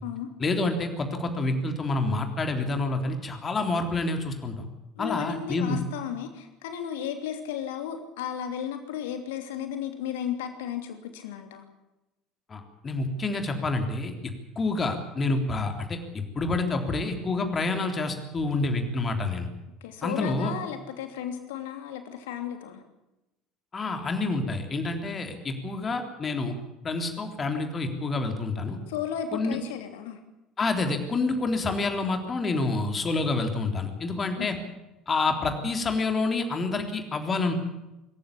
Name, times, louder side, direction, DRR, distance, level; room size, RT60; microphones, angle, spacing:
voice 1, 0.4-4.7 5.0-5.8 12.5-14.1 14.6-19.5 20.0-20.5 23.7-26.5 26.8-28.8 29.3-29.6 30.6-34.5 35.1-37.5, left 3 dB, 30° left, 5 dB, 3.6 m, -28 dB
voice 2, 4.9-11.6 19.8-22.8 28.9-30.2 34.4-34.6, left 9 dB, 65° left, 7 dB, 3.0 m, -34 dB
25.5 x 14.5 x 8.6 m, 0.97 s
figure-of-eight pair, 65°, 0 cm